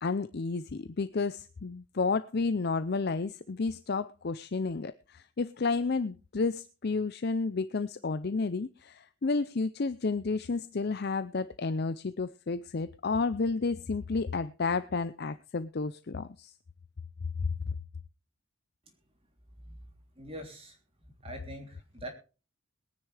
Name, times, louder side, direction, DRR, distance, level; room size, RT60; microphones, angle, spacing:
voice 1, 0.0-16.5, left 4 dB, 50° left, 0.5 m, -31 dB
voice 2, 20.1-20.8 21.2-22.1, right 1 dB, 25° right, 3.2 m, -43 dB
21.5 x 9.9 x 3.4 m
head